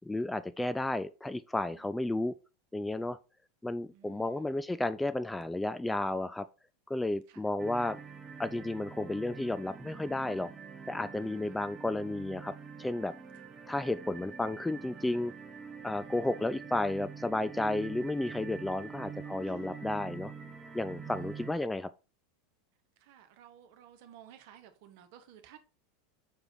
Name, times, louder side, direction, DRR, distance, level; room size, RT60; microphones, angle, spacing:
voice 1, 0.1-2.3 2.7-3.2 3.6-6.5 6.9-8.0 8.4-10.5 10.9-12.5 12.8-13.1 13.7-15.3 15.8-20.3 20.7-21.9, left 2 dB, 5° left, 0.4 m, -32 dB
voice 2, 1.7-2.1 3.9-4.5 7.3-7.4 11.2-11.6 16.0-16.3 19.4-19.7 21.1-21.3 23.0-25.6, right 10 dB, 55° right, 1.3 m, -56 dB
sound 1, 7.6-21.5, right 5 dB, 20° right, 1.1 m, -45 dB
6.4 x 4.8 x 4.0 m
figure-of-eight pair, 85°, 0 cm